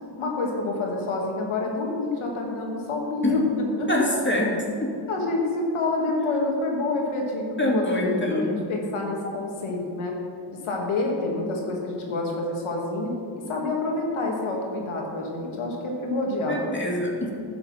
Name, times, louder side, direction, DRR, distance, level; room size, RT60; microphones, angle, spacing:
voice 1, 0.2-3.4 3.8-3.9 5.1-10.1 10.6-16.6, left 2 dB, 85° left, 0 dB, 2.0 m, -28 dB
voice 2, 3.9-4.5 4.8-4.9 7.6-8.6 16.5-17.3, left 1 dB, 25° left, -1 dB, 2.4 m, -24 dB
11.0 x 6.8 x 5.6 m, 2.5 s
cardioid pair, 60°, 48 cm